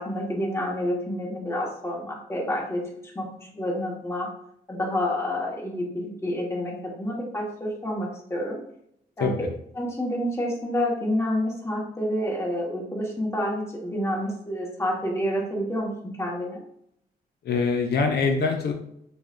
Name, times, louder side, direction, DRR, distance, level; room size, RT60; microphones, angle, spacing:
voice 1, 0.0-2.9 3.1-4.3 4.7-8.6 9.2-9.3 9.8-16.6, left 1 dB, 15° left, -3 dB, 1.4 m, -28 dB
voice 2, 9.2-9.5 17.4-18.7, left 4 dB, 80° left, 3 dB, 0.6 m, -24 dB
6.6 x 2.3 x 2.5 m, 0.72 s
cardioid pair, 105°, 17 cm